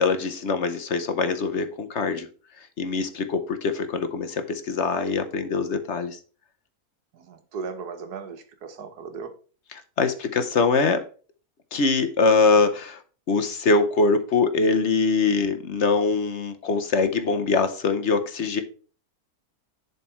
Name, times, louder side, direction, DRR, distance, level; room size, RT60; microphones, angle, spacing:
voice 1, 0.0-2.3 2.8-6.2 10.0-11.0 11.7-13.0 13.3-18.6, left 4 dB, 55° left, 1.0 m, -23 dB
voice 2, 7.1-9.4, right 5 dB, 90° right, 1.6 m, -37 dB
10.5 x 4.2 x 4.4 m
omnidirectional pair, 1.6 m